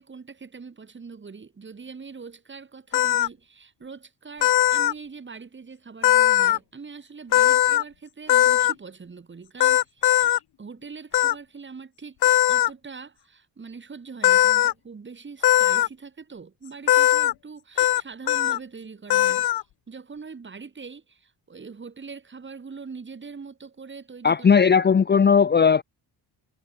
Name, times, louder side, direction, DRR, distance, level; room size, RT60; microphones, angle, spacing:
voice 1, 0.0-12.2 12.5-19.5 19.9-24.6, right 5 dB, 30° right, 4.2 m, -42 dB
sound 1, 2.9-3.3 4.4-4.9 6.0-6.6 7.3-7.8 8.3-8.7 9.6-10.4 11.1-11.3 12.2-12.7 14.2-14.7 15.4-15.9 16.9-17.3 17.8-18.0 18.3-18.6 19.1-19.6, left 14 dB, 65° left, 1.0 m, -19 dB
voice 2, 24.2-25.8, left 6 dB, 25° left, 0.8 m, -17 dB
cardioid pair, 135°, 41 cm